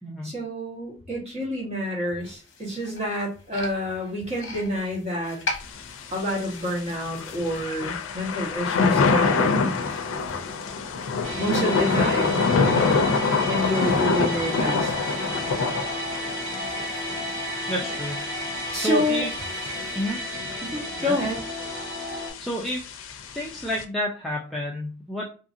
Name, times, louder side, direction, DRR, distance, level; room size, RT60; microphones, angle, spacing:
voice 1, 0.2-5.4 6.1-10.0 11.4-12.4 13.5-14.9 18.7-19.2 20.6-21.4, left 1 dB, 30° right, -3 dB, 1.2 m, -28 dB
sound 1, 2.2-20.1, left 3 dB, 65° left, 0.8 m, -44 dB
Thunder / Rain, 5.6-23.8, left 4 dB, 85° left, 0.4 m, -27 dB
sound 2, 11.2-22.3, equal, 85° right, 1.3 m, -33 dB
voice 2, 17.7-18.2 18.7-19.3 20.0-20.2 21.0-21.1 22.4-22.8 23.3-25.3, equal, ahead, -5 dB, 0.4 m, -29 dB
2.8 x 2.6 x 2.5 m, 0.35 s
head